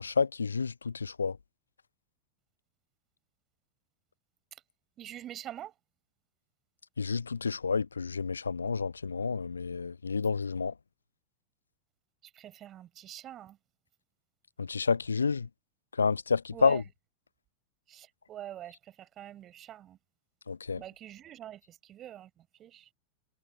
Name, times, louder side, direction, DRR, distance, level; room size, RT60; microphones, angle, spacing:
voice 1, 0.0-1.4 7.0-10.7 14.6-15.5 15.9-16.8 20.5-20.8, left 5 dB, 75° left, 0.4 m, -29 dB
voice 2, 5.0-5.7 12.2-13.6 16.5-16.8 17.9-20.0 20.7-22.9, right 12 dB, 30° right, 6.5 m, -45 dB
figure-of-eight pair, 90°, 0 cm